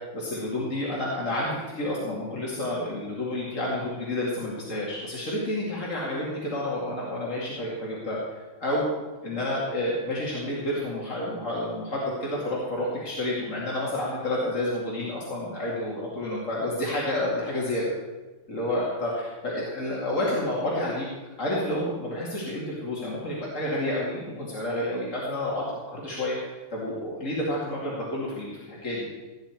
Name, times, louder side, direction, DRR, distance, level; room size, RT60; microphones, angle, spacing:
voice 1, 0.1-8.9 9.2-17.9 18.5-21.1 21.4-26.4 26.7-29.1, left 1 dB, 80° left, -6 dB, 2.9 m, -30 dB
17.0 x 9.8 x 4.6 m, 1.2 s
omnidirectional pair, 1.3 m